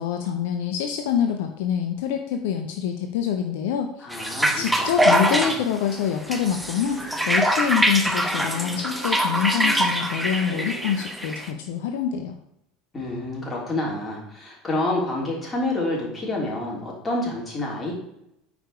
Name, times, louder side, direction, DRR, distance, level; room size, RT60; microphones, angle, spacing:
voice 1, 0.0-3.9 4.6-12.4, left 8 dB, 60° left, 5 dB, 0.6 m, -26 dB
voice 2, 4.0-5.5 12.9-17.9, left 2 dB, 20° left, -3 dB, 3.4 m, -28 dB
sound 1, 4.1-11.5, equal, 5° right, 0.9 m, -24 dB
sound 2, 5.9-11.2, equal, 70° right, 2.1 m, -42 dB
8.9 x 5.0 x 4.8 m, 0.81 s
figure-of-eight pair, 75°, 0 cm